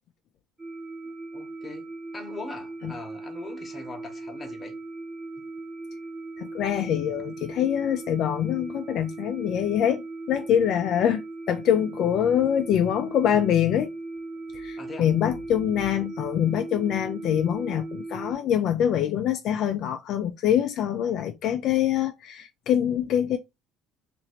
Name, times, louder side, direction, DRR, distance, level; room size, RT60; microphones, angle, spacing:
sound 1, 0.6-18.3, right 2 dB, 10° right, 0.7 m, -38 dB
voice 1, 1.0-1.9 2.1-4.8 14.8-15.1, left 3 dB, 20° left, 1.0 m, -41 dB
voice 2, 6.4-13.9 14.5-23.4, left 10 dB, 55° left, 0.4 m, -24 dB
2.9 x 2.5 x 4.2 m
cardioid pair, 135°, 0 cm